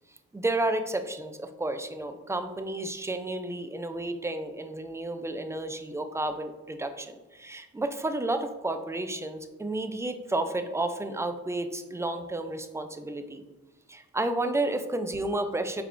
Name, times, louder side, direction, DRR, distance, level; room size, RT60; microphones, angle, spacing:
voice 1, 0.3-13.4 13.9-15.8, right 2 dB, 10° right, 8 dB, 0.3 m, -31 dB
4.2 x 3.5 x 2.5 m, 1.1 s
cardioid pair, 55°, 30 cm